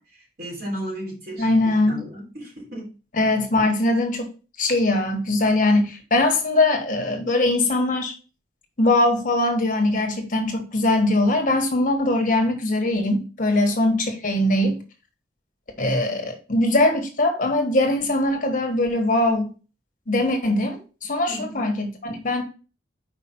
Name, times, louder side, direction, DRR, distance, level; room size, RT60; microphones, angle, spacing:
voice 1, 0.0-2.9 13.5-13.9 21.3-21.7, equal, 55° right, 3.6 m, -35 dB
voice 2, 1.4-2.0 3.2-4.3 4.6-8.1 8.8-14.8 15.8-19.5 20.1-22.4, left 2 dB, 45° left, 1.3 m, -21 dB
5.1 x 4.9 x 4.3 m
head